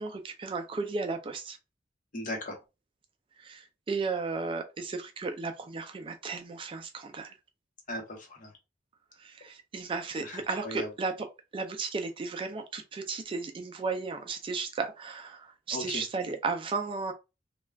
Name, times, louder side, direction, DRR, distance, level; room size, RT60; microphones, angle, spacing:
voice 1, 0.0-1.6 3.4-7.4 9.2-11.1 11.5-17.1, right 4 dB, 30° right, 0.3 m, -34 dB
voice 2, 2.1-2.6 7.9-8.5 10.2-10.9 15.7-16.0, left 1 dB, 45° left, 0.9 m, -37 dB
2.3 x 2.3 x 3.2 m
head